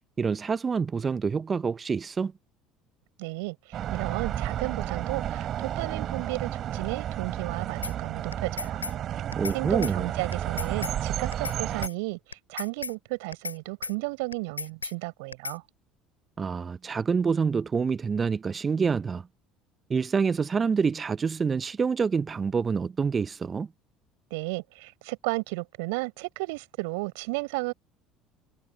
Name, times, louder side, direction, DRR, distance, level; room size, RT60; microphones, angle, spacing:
voice 1, 0.2-2.3 9.4-10.1 16.4-19.3 19.9-23.7, right 5 dB, 30° right, 0.6 m, -27 dB
voice 2, 3.2-8.8 9.5-15.6 24.3-27.7, right 27 dB, 70° right, 4.7 m, -33 dB
sound 1, 3.7-11.9, right 11 dB, 50° right, 5.6 m, -32 dB
sound 2, 7.8-7.9 8.3-8.9 9.3-9.6 9.8-9.9 10.3-10.9 11.3-11.6 11.8-11.9 12.3-12.9 13.3-13.6 13.8-13.9 14.3-14.9 15.3-15.6, left 4 dB, 90° left, 3.3 m, -35 dB
figure-of-eight pair, 60°, 0 cm